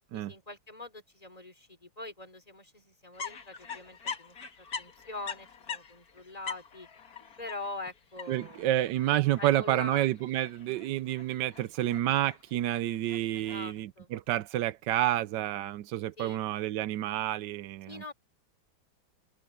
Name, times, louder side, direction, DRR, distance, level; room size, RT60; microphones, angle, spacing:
voice 1, 0.1-4.4 4.8-6.9 7.4-8.6 9.4-10.1 13.3-14.1 16.2-16.4 17.9-18.1, left 2 dB, 20° left, 3.8 m, -43 dB
sound 1, 3.1-13.8, left 6 dB, 55° left, 2.1 m, -44 dB
voice 2, 8.3-18.1, right 13 dB, 75° right, 1.2 m, -29 dB
open air
omnidirectional pair, 2.0 m